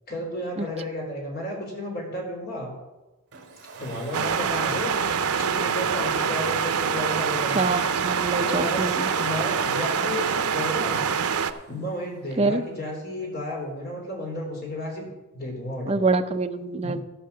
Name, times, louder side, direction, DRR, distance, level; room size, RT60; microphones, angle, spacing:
voice 1, 0.1-2.7 3.8-4.9 5.4-7.6 8.5-11.1 11.7-15.1 15.3-16.0 16.8-16.9, left 1 dB, 45° left, -1 dB, 3.7 m, -33 dB
Domestic sounds home sounds, 3.3-11.8, right 5 dB, 50° right, 2.3 m, -40 dB
sound 1, 4.1-11.5, right 6 dB, 80° right, 0.7 m, -25 dB
voice 2, 7.5-9.1 12.4-12.6 15.9-17.0, right 3 dB, 25° right, 7 dB, 0.5 m, -25 dB
13.5 x 5.6 x 6.9 m, 1.1 s
head